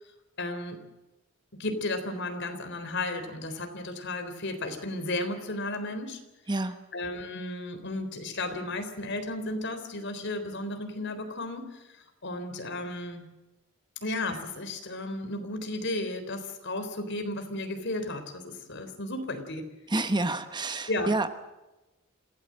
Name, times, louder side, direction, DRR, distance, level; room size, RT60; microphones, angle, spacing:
voice 1, 0.4-0.8 1.6-6.2 6.9-11.8 12.2-13.3 14.0-19.7 20.9-21.1, left 2 dB, 55° left, 7 dB, 3.9 m, -34 dB
voice 2, 6.5-6.8 19.9-21.3, right 2 dB, 20° right, 10 dB, 1.0 m, -28 dB
27.5 x 17.0 x 7.6 m, 1.0 s
head